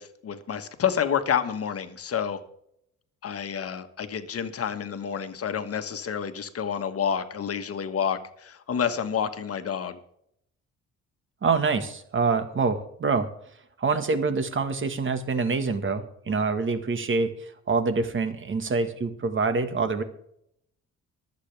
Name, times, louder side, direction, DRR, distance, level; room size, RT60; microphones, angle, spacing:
voice 1, 0.0-2.4 3.2-10.0, left 8 dB, 50° left, 9 dB, 1.5 m, -29 dB
voice 2, 11.4-13.3 13.8-20.0, right 4 dB, 40° right, 10 dB, 1.6 m, -26 dB
24.5 x 8.3 x 3.4 m, 0.71 s
cardioid pair, 90°, 30 cm